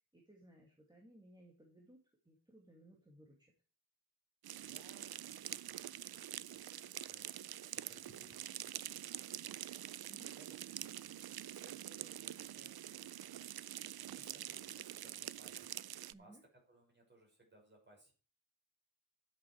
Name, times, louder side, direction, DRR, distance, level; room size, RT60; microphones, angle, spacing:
voice 1, 0.1-3.5 10.1-10.3 16.1-16.4, right 1 dB, 10° right, -2 dB, 2.4 m, -61 dB
sound 1, 4.4-16.1, right 12 dB, 60° right, 0.5 m, -46 dB
voice 2, 4.5-7.3 7.7-9.7 10.3-13.2 14.0-15.7 16.2-16.4 16.7-18.1, right 2 dB, 25° right, -1 dB, 6.1 m, -64 dB
11.5 x 8.0 x 4.7 m, 0.37 s
wide cardioid pair, 140°, 42 cm